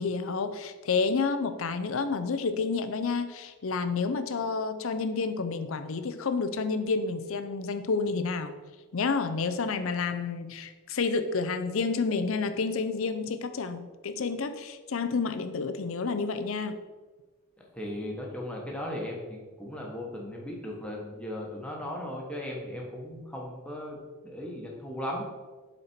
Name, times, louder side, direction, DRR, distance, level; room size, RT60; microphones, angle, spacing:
voice 1, 0.0-8.5 8.9-16.8, left 4 dB, 65° left, 10 dB, 0.5 m, -30 dB
voice 2, 17.7-25.3, left 1 dB, 5° left, -2 dB, 1.2 m, -37 dB
8.0 x 4.2 x 4.4 m, 1.3 s
head